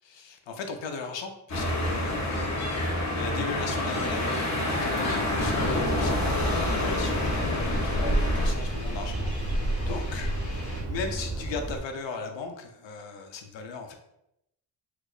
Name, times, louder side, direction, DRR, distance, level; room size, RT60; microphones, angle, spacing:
voice 1, 0.1-2.7 3.2-4.3 4.7-10.6 10.9-14.0, left 4 dB, 90° left, 5 dB, 0.7 m, -38 dB
sound 1, 1.5-8.5, left 1 dB, 40° left, 0.7 m, -28 dB
Bird, 5.3-11.8, right 1 dB, 35° right, 0.4 m, -30 dB
sound 2, 5.4-10.8, equal, 55° left, 1.3 m, -38 dB
4.5 x 2.4 x 2.4 m, 0.81 s
wide cardioid pair, 175°, 43 cm